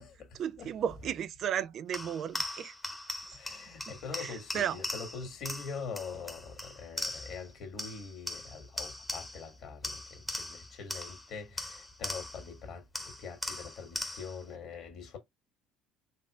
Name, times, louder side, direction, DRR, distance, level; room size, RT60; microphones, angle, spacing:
voice 1, 0.4-2.7 3.9-4.8, right 9 dB, 50° right, 0.3 m, -34 dB
sound 1, 1.9-7.5 7.8-9.5 9.8-12.5 12.9-14.4, left 1 dB, 10° left, 1.0 m, -40 dB
voice 2, 3.3-15.2, left 5 dB, 55° left, 1.7 m, -43 dB
4.2 x 3.0 x 2.3 m
hypercardioid pair, 60°, 0 cm